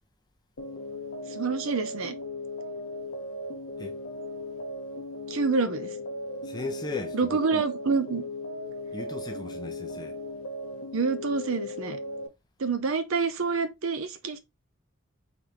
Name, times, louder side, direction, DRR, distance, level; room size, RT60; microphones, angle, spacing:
sound 1, 0.6-12.3, left 1 dB, 65° left, 0.7 m, -37 dB
voice 1, 1.3-2.1 5.3-5.9 7.1-8.2 10.9-12.0 12.6-14.4, right 4 dB, 70° right, 0.6 m, -27 dB
voice 2, 6.4-7.6 8.9-10.2, left 3 dB, 20° left, 0.6 m, -37 dB
3.9 x 3.4 x 2.9 m
head